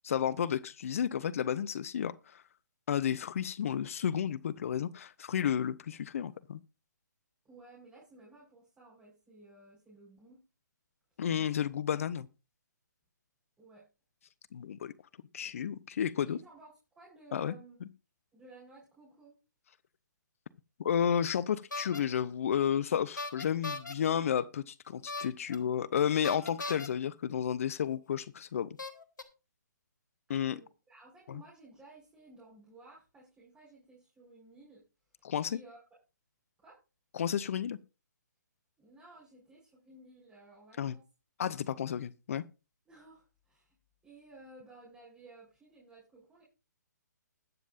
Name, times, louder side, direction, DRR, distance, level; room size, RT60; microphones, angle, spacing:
voice 1, 0.0-2.4 2.9-6.6 11.2-12.3 14.5-14.9 15.3-16.4 17.3-17.5 20.8-28.7 30.3-30.6 31.3-31.4 35.2-35.6 37.1-37.8 40.8-41.0 41.4-42.4, left 8 dB, 50° left, 0.6 m, -32 dB
voice 2, 7.4-10.4 11.2-11.6 13.6-13.9 16.2-17.8 18.3-19.4 30.3-34.8 35.5-35.8 36.6-36.8 38.8-41.0 42.9-43.7 44.0-46.4, right 2 dB, 10° right, 4.8 m, -56 dB
sound 1, 21.7-22.0 23.2-23.9 25.1-25.6 26.2-26.9 27.9-28.0 28.8-29.2, left 3 dB, 75° left, 1.4 m, -38 dB
20.5 x 7.3 x 2.5 m
figure-of-eight pair, 135°, 10 cm